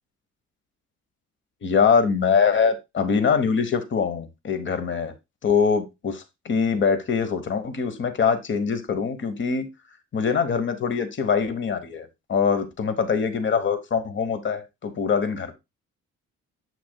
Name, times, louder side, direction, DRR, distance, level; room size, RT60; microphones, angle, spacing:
voice 1, 1.6-5.1 5.4-9.7 10.1-15.5, left 6 dB, 40° left, 1.0 m, -23 dB
7.5 x 5.9 x 2.2 m
cardioid pair, 90°, 30 cm